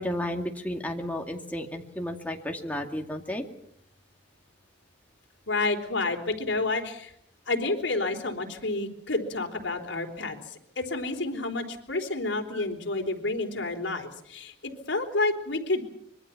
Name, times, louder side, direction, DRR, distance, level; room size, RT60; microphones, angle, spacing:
voice 1, 0.0-3.4 12.5-12.6, left 1 dB, 10° left, 2 dB, 2.4 m, -33 dB
voice 2, 5.5-7.1 7.5-15.8, left 2 dB, 75° left, 3 dB, 4.0 m, -30 dB
25.5 x 23.0 x 6.0 m, 0.70 s
head